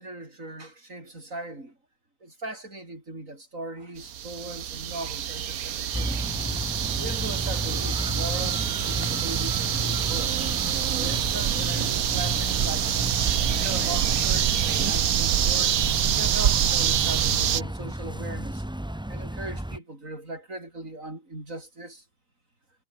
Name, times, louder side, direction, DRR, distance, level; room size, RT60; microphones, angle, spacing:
voice 1, 0.0-1.7 2.2-6.2 6.9-10.4 11.0-12.9 13.5-15.8 16.0-18.6 19.1-22.0, right 2 dB, 65° right, 7.7 m, -39 dB
sound 1, 4.0-17.6, right 10 dB, 90° right, 1.4 m, -26 dB
sound 2, 5.9-19.8, right 1 dB, 5° right, 0.6 m, -33 dB
omnidirectional pair, 1.5 m